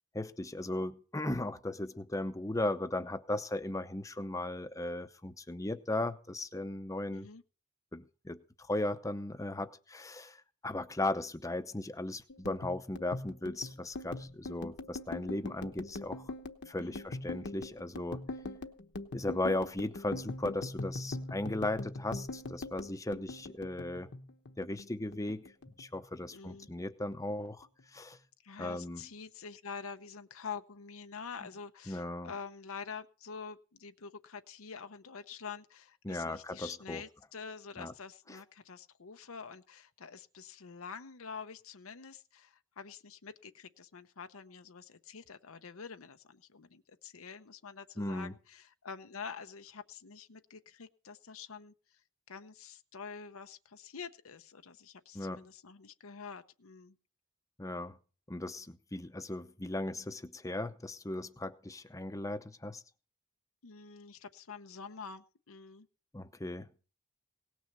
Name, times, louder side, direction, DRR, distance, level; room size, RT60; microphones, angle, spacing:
voice 1, 0.1-7.3 7.9-8.4 8.7-16.3 16.7-18.3 19.1-24.1 24.6-25.5 25.8-27.7 27.9-28.2 28.6-29.0 31.4-31.5 31.9-32.3 36.0-37.0 37.8-37.9 48.0-48.3 55.1-55.5 57.6-58.0 58.3-62.8 66.1-66.7, left 2 dB, 15° left, 10 dB, 0.8 m, -37 dB
voice 2, 7.1-7.4 16.8-17.0 26.3-26.7 28.4-52.0 52.3-57.0 63.6-65.9, left 5 dB, 80° left, 9 dB, 0.8 m, -47 dB
sound 1, 12.3-24.9 25.1-26.2 26.5-26.8 27.1-27.8, left 2 dB, 55° left, 1.1 m, -42 dB
18.0 x 6.3 x 6.7 m, 0.38 s
head